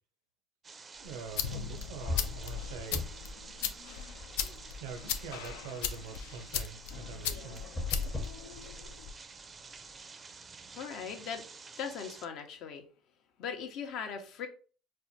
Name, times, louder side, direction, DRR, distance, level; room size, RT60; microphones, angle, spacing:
sound 1, 0.6-12.3, right 4 dB, 30° right, 0.4 m, -50 dB
sound 2, 1.0-9.1, left 8 dB, 85° left, 0.3 m, -39 dB
voice 1, 1.0-3.1 4.4-7.6, right 5 dB, 85° right, 0.5 m, -45 dB
sound 3, 2.0-3.4 3.7-4.8 7.6-9.1, left 3 dB, 35° left, 0.8 m, -37 dB
voice 2, 10.7-11.5 11.8-12.9 13.4-14.5, left 7 dB, 65° left, 0.7 m, -39 dB
4.3 x 2.1 x 2.7 m
supercardioid pair, 85°, 0 cm